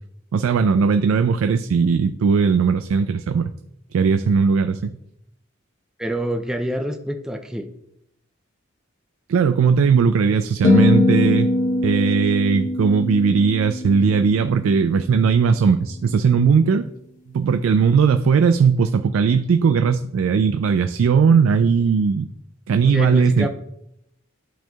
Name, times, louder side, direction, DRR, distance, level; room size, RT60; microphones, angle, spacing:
voice 1, 0.3-3.5 3.9-5.0 9.3-11.5 11.8-16.9 17.3-22.3 22.7-23.5, right 5 dB, 90° right, 9 dB, 0.3 m, -18 dB
voice 2, 6.0-7.7 22.8-23.5, equal, 5° right, 4 dB, 0.4 m, -27 dB
sound 1, 10.6-15.0, left 2 dB, 35° left, 0.8 m, -21 dB
11.0 x 4.5 x 2.3 m, 0.78 s
head